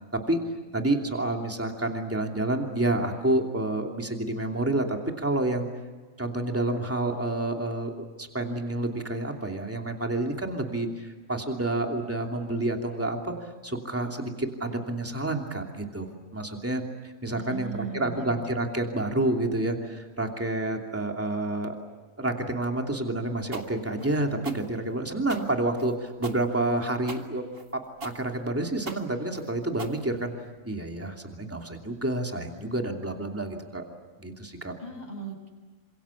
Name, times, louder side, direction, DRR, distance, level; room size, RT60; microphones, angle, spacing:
voice 1, 0.7-5.7 6.2-13.3 13.6-21.7 22.2-27.4 27.7-30.3 30.6-33.8 34.2-34.7, right 2 dB, 10° right, 2 dB, 2.8 m, -29 dB
voice 2, 17.3-18.3 34.8-35.5, right 4 dB, 30° left, 2 dB, 7.0 m, -37 dB
sound 1, 23.5-30.6, right 2 dB, 45° right, 2.2 m, -42 dB
29.0 x 26.0 x 7.3 m, 1.3 s
omnidirectional pair, 1.4 m